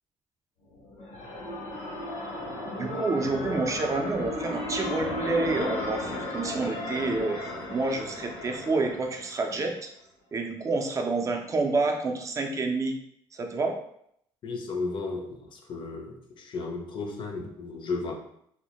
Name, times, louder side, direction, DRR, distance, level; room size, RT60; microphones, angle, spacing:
sound 1, 0.7-9.5, left 1 dB, 85° left, 0.8 m, -35 dB
voice 1, 2.8-7.4 7.7-9.9 10.3-13.0 13.3-13.8, right 3 dB, 30° right, 3 dB, 0.4 m, -28 dB
voice 2, 14.4-18.1, left 3 dB, 50° left, 3 dB, 0.5 m, -34 dB
2.1 x 2.1 x 2.8 m, 0.71 s
supercardioid pair, 80°, 11 cm